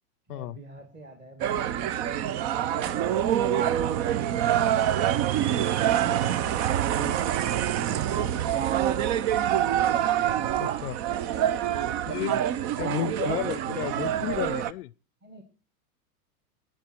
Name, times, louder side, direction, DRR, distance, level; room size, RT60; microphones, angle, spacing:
voice 1, 0.3-5.6 15.2-15.4, right 2 dB, 20° right, 2.0 m, -47 dB
sound 1, 1.4-14.7, right 10 dB, 45° right, 0.7 m, -26 dB
voice 2, 10.6-11.0 12.1-12.4 12.8-14.9, left 17 dB, 75° left, 0.5 m, -33 dB
19.0 x 9.0 x 4.4 m
hypercardioid pair, 115°, 46 cm